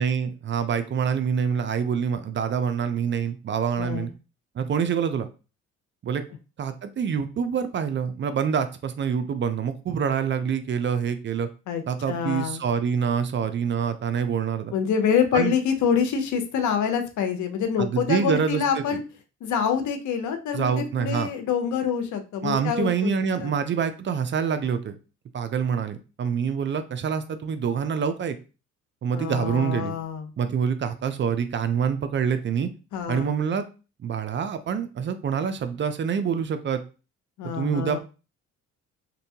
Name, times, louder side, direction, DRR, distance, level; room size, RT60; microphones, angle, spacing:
voice 1, 0.0-4.1 4.6-5.3 6.0-6.2 6.6-11.5 11.9-14.7 15.3-15.5 17.8-19.0 20.5-21.3 22.4-25.0 25.3-28.4 29.0-29.9 30.4-32.7 33.1-33.7 34.0-36.8 37.6-38.0, right 7 dB, 40° right, 10 dB, 0.4 m, -26 dB
voice 2, 3.8-4.1 11.7-11.8 12.1-12.6 14.7-19.0 19.4-23.1 23.4-23.5 29.1-30.3 32.9-33.3 37.4-38.0, left 7 dB, 75° left, 6 dB, 0.6 m, -26 dB
2.7 x 2.2 x 2.7 m, 0.32 s
cardioid pair, 90°, 30 cm